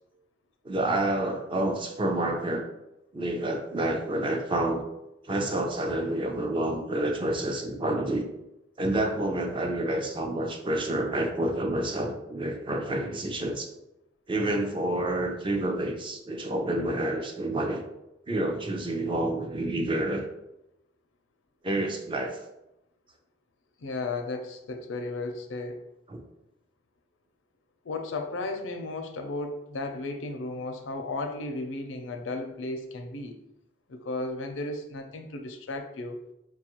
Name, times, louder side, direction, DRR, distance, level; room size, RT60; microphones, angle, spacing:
voice 1, 0.6-2.7 3.1-4.8 5.2-8.3 8.8-13.7 14.3-17.8 18.3-20.3 21.6-22.4 26.1-26.2, right 1 dB, 25° right, 3 dB, 0.5 m, -28 dB
voice 2, 23.8-25.8 27.8-33.4 33.9-36.2, left 2 dB, 80° left, 6 dB, 0.5 m, -34 dB
4.7 x 2.3 x 2.9 m, 0.87 s
head